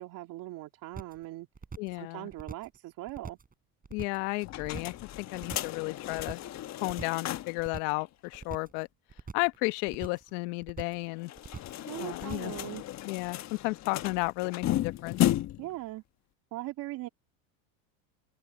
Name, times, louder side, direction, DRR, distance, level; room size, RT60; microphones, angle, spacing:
voice 1, 0.0-1.5 1.9-3.4 11.8-12.8 15.6-16.0 16.5-17.1, right 17 dB, 50° right, 2.8 m, -40 dB
sound 1, 0.9-1.2 1.5-2.0 2.3-2.8 3.1-3.5 3.8-4.3 4.6-5.0 5.3-5.8 6.1-6.6 6.9-7.3 7.6-8.0 8.3-8.8 9.1-9.6 9.9-10.3 10.6-11.1 11.4-11.8 12.1-12.6, right 5 dB, 20° right, 7.9 m, -43 dB
voice 2, 1.8-2.3 3.9-6.4 6.8-8.9 9.3-11.3 12.0-12.5 13.0-15.2, left 26 dB, 65° left, 1.2 m, -33 dB
sound 2, 4.4-7.7 8.0-8.1 8.3-8.4 11.2-15.7, left 14 dB, 40° left, 1.3 m, -34 dB
supercardioid pair, 105°, 42 cm